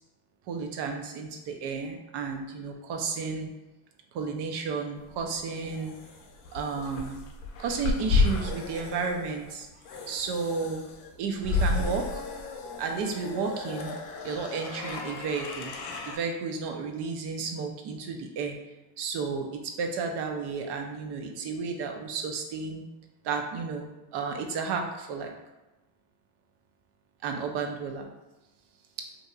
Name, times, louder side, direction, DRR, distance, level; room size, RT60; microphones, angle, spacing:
voice 1, 0.5-3.5 4.1-5.9 6.5-7.2 7.6-9.7 10.1-10.8 11.2-12.2 12.8-14.0 14.2-15.7 16.0-18.5 19.0-22.8 23.2-25.3 27.2-28.1, right 5 dB, 55° right, 3 dB, 0.6 m, -32 dB
sound 1, 5.1-16.2, left 3 dB, 55° left, 0.6 m, -32 dB
2.7 x 2.6 x 2.3 m, 1.0 s
supercardioid pair, 100°, 50 cm